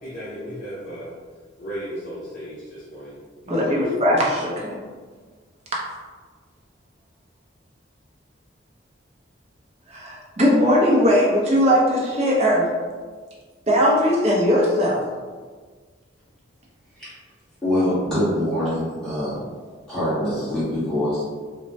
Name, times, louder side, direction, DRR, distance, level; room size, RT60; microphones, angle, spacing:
voice 1, 0.0-1.1 1.6-3.8, equal, 45° left, -9 dB, 0.6 m, -35 dB
voice 2, 3.5-4.7 9.9-12.7 13.7-15.0, equal, 35° right, -4 dB, 0.6 m, -19 dB
voice 3, 17.6-19.5 19.9-21.2, left 1 dB, 5° left, -12 dB, 1.2 m, -24 dB
3.0 x 2.1 x 2.6 m, 1.5 s
head